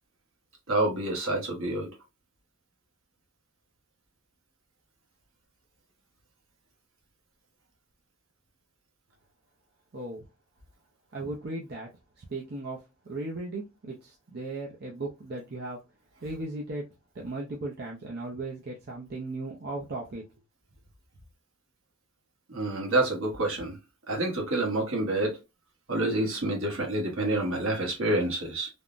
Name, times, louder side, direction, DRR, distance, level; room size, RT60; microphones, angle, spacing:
voice 1, 0.7-1.9 22.5-23.8 24.1-25.4 25.9-28.7, right 1 dB, 60° right, 1.0 m, -28 dB
voice 2, 9.9-10.2 11.1-11.9 12.2-12.8 13.1-15.8 16.2-16.8 17.1-20.2, right 2 dB, 45° right, 0.5 m, -36 dB
3.5 x 2.0 x 2.4 m
head